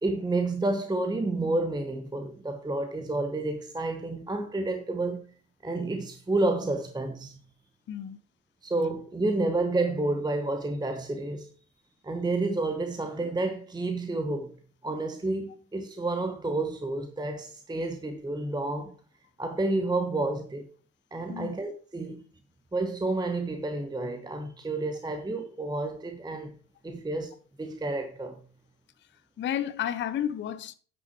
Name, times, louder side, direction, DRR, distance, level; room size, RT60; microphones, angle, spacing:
voice 1, 0.0-5.2 5.6-7.4 8.6-11.5 12.0-14.5 14.8-18.9 19.4-20.7 21.1-22.2 22.7-26.6 26.8-27.3 27.6-28.4, right 2 dB, 10° right, 1.0 m, -30 dB
voice 2, 7.9-8.2 21.3-21.5 29.4-30.7, left 10 dB, 25° left, 0.6 m, -31 dB
9.3 x 6.2 x 4.6 m
figure-of-eight pair, 60°, 48 cm